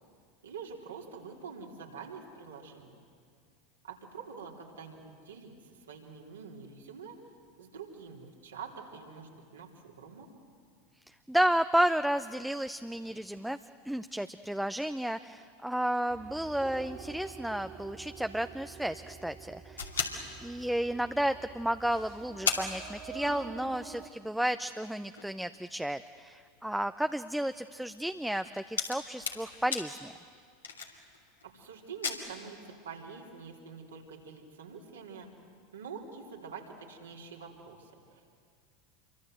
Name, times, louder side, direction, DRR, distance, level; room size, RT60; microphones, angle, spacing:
voice 1, 0.4-2.9 3.8-7.2 7.6-10.3 31.4-35.3 35.7-38.3, right 5 dB, 80° right, 0 dB, 3.5 m, -46 dB
voice 2, 11.3-13.6 13.9-20.0 20.4-30.1, right 1 dB, ahead, 10 dB, 0.6 m, -32 dB
sound 1, 16.1-24.1, right 7 dB, 45° right, 2.4 m, -48 dB
sound 2, 19.8-21.2 21.7-21.8 22.0-22.1 22.5-23.7 24.0-24.1 24.6-31.4 31.8-32.1, left 6 dB, 85° left, 2.6 m, -37 dB
27.5 x 23.5 x 7.8 m, 2.2 s
hypercardioid pair, 85°, 0 cm